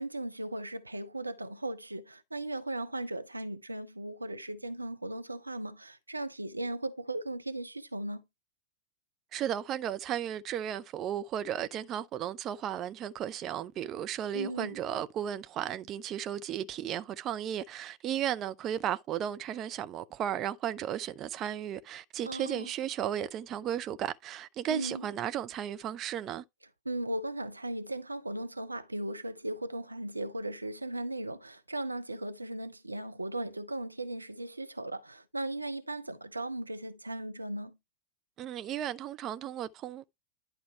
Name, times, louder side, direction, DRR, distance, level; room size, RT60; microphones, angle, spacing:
voice 1, 0.0-8.2 14.3-14.8 22.3-22.7 24.7-25.1 26.9-37.8, right 1 dB, 85° right, 0.5 m, -37 dB
voice 2, 9.3-26.4 38.4-40.1, right 10 dB, 30° right, 0.6 m, -35 dB
11.0 x 4.5 x 3.2 m
figure-of-eight pair, 90°, 0 cm